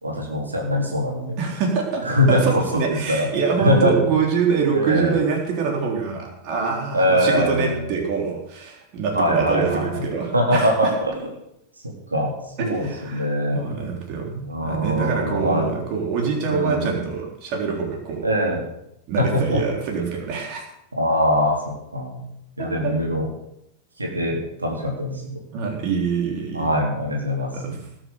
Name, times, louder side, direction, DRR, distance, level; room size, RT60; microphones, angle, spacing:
voice 1, 0.0-1.4 2.1-2.8 3.1-3.3 3.6-3.9 4.7-5.1 6.9-7.9 9.1-10.0 10.3-11.3 12.1-13.6 14.5-15.7 16.4-17.0 18.2-18.6 19.2-19.6 20.9-22.3 22.6-23.3 24.0-25.4 26.5-27.8, equal, 80° right, -1 dB, 3.8 m, -22 dB
voice 2, 1.4-10.9 12.6-13.3 13.5-18.3 19.1-20.6 22.6-22.9 25.5-26.7 27.5-27.8, right 5 dB, 40° right, 0 dB, 3.8 m, -25 dB
19.5 x 7.6 x 7.1 m, 0.81 s
figure-of-eight pair, 90°, 0 cm